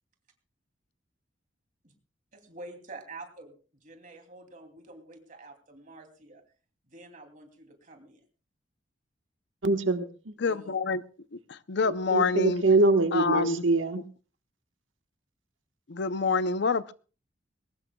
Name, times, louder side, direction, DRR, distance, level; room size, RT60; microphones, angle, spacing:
voice 1, 2.3-3.5 3.8-6.4 6.9-8.2 10.4-10.8, right 2 dB, 45° right, 5 dB, 2.8 m, -47 dB
voice 2, 9.6-10.3 11.9-14.0, right 3 dB, 90° right, 7 dB, 1.3 m, -24 dB
voice 3, 10.4-11.0 11.3-12.6 13.1-13.6 15.9-16.9, left 4 dB, 60° left, 15 dB, 0.6 m, -27 dB
21.5 x 18.5 x 2.3 m, 0.36 s
head